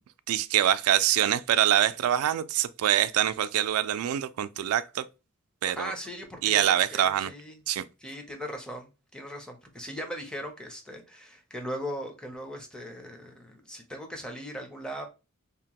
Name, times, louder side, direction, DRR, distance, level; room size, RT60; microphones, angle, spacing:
voice 1, 0.3-5.1 5.6-5.9 6.4-7.3 7.7-7.8, right 11 dB, 80° right, 0.3 m, -25 dB
voice 2, 5.8-7.6 8.0-15.1, equal, 5° left, 0.6 m, -39 dB
2.8 x 2.1 x 2.8 m
head